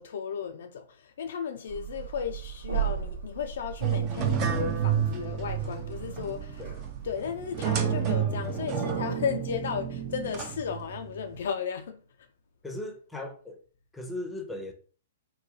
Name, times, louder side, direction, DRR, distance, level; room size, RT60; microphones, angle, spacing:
voice 1, 0.0-6.6 7.0-12.0, left 7 dB, 60° left, 0.4 m, -35 dB
sound 1, 1.7-7.1, right 9 dB, 75° right, 0.9 m, -37 dB
sound 2, 3.8-11.4, right 7 dB, 35° right, 0.6 m, -30 dB
voice 2, 12.6-13.6 13.9-14.7, left 1 dB, 5° left, 0.6 m, -37 dB
3.7 x 2.3 x 2.7 m
figure-of-eight pair, 115°, 0 cm